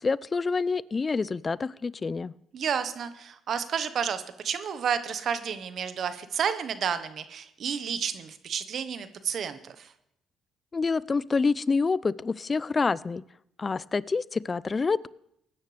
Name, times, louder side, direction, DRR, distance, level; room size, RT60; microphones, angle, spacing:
voice 1, 0.0-2.3 10.7-13.2 13.6-15.1, left 4 dB, 35° left, 20 dB, 0.4 m, -27 dB
voice 2, 2.5-9.9, right 7 dB, 60° right, 11 dB, 1.1 m, -31 dB
19.5 x 10.0 x 3.4 m, 0.76 s
supercardioid pair, 65°, 0 cm